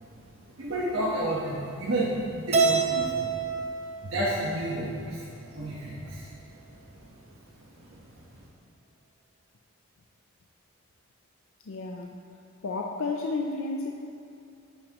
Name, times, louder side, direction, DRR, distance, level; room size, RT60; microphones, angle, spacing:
voice 1, 0.6-7.2 7.6-8.5, right 1 dB, 75° right, -7 dB, 1.2 m, -32 dB
Keyboard (musical), 2.5-4.9, right 5 dB, 30° right, 0.5 m, -27 dB
voice 2, 11.7-12.2 12.6-13.9, left 3 dB, 70° left, 1 dB, 0.5 m, -31 dB
8.5 x 8.4 x 3.0 m, 2.5 s
head